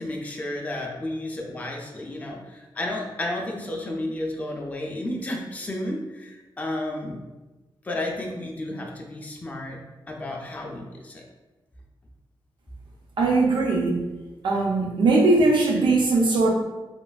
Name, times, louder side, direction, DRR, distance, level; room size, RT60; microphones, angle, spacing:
voice 1, 0.0-7.2 7.8-9.8 10.1-11.2, left 1 dB, 20° left, -1 dB, 0.4 m, -32 dB
voice 2, 13.2-14.0 14.4-16.5, right 3 dB, 70° right, 0 dB, 0.6 m, -20 dB
3.1 x 2.4 x 2.3 m, 1.1 s
wide cardioid pair, 115°, 8 cm